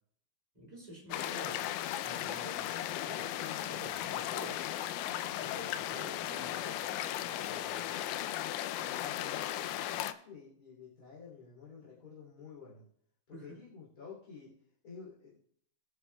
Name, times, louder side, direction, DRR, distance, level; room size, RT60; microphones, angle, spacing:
voice 1, 0.5-1.7 2.0-4.6 5.0-8.0 13.3-13.6, equal, 10° right, -2 dB, 2.2 m, -49 dB
sound 1, 1.1-10.1, left 12 dB, 90° left, 2.8 m, -36 dB
voice 2, 8.7-12.9 13.3-14.6 14.8-15.4, left 5 dB, 25° left, -7 dB, 2.6 m, -51 dB
21.0 x 8.2 x 2.2 m, 0.64 s
omnidirectional pair, 4.9 m